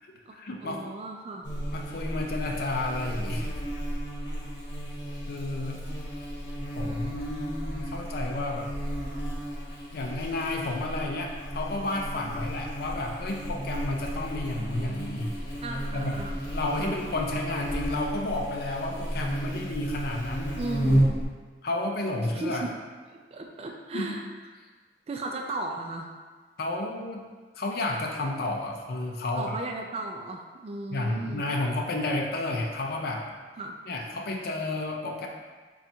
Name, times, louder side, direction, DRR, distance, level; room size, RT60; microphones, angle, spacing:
voice 1, 0.0-0.8 1.7-3.5 5.3-5.8 6.8-8.7 9.9-15.3 15.9-16.2 16.5-20.6 21.6-22.7 23.9-24.2 26.6-27.3 27.6-29.6 30.9-33.3 33.9-35.3, left 2 dB, 60° left, 1 dB, 0.5 m, -31 dB
voice 2, 0.6-1.5 12.3-12.4 15.6-16.4 16.8-17.0 20.6-21.1 22.3-22.8 23.1-24.3 25.1-26.1 29.4-31.5 33.6-33.8, right 2 dB, 35° right, 2 dB, 0.3 m, -36 dB
Buzz, 1.4-21.2, equal, 85° left, 0.9 m, -33 dB
3.8 x 2.4 x 4.3 m, 1.4 s
head